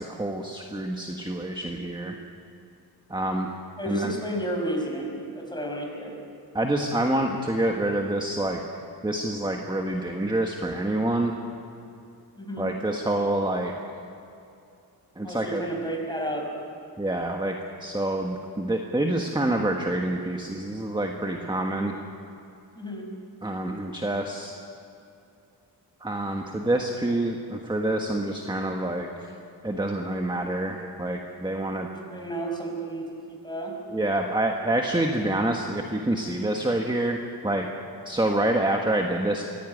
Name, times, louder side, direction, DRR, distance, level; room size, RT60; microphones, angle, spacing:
voice 1, 0.0-2.2 3.1-3.5 3.9-4.1 6.5-8.6 9.0-11.3 12.6-13.7 15.2-15.6 17.0-21.9 23.4-24.5 26.0-29.1 29.6-31.9 33.9-37.7 38.0-39.4, right 1 dB, 10° right, 2 dB, 1.5 m, -27 dB
voice 2, 3.8-6.1 12.4-12.7 15.2-16.5 22.7-23.0 31.8-33.0 33.4-33.7, right 1 dB, 10° left, 0 dB, 5.5 m, -32 dB
24.0 x 16.5 x 9.3 m, 2.6 s
wide cardioid pair, 110°, 41 cm